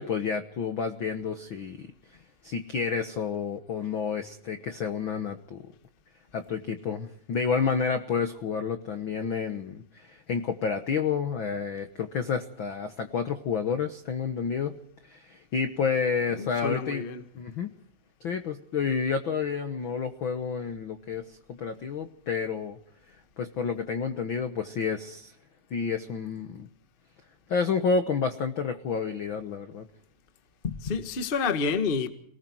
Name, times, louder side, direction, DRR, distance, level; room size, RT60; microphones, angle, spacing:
voice 1, 0.0-1.9 2.4-5.7 6.3-14.8 15.0-17.0 17.3-17.7 18.2-22.8 23.4-25.3 25.7-26.7 27.5-29.9, left 6 dB, 70° left, 1.1 m, -30 dB
voice 2, 16.3-17.2 30.6-32.1, left 5 dB, 40° left, 0.7 m, -29 dB
29.0 x 19.5 x 4.6 m
omnidirectional pair, 4.0 m